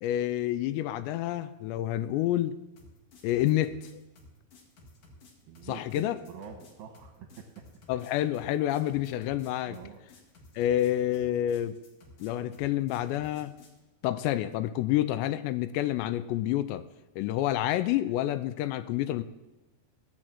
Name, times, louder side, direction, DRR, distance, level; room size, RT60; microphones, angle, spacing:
voice 1, 0.0-2.6 3.2-4.0 5.6-6.2 7.9-9.8 10.6-11.8 12.2-13.5 14.0-16.8 17.2-19.2, left 13 dB, 85° left, 14 dB, 2.7 m, -28 dB
sound 1, 2.8-13.8, left 2 dB, 50° left, 2.5 m, -54 dB
voice 2, 5.5-7.5 9.6-10.0, right 7 dB, 70° right, 3 dB, 2.4 m, -46 dB
16.5 x 6.3 x 7.5 m, 1.1 s
omnidirectional pair, 5.1 m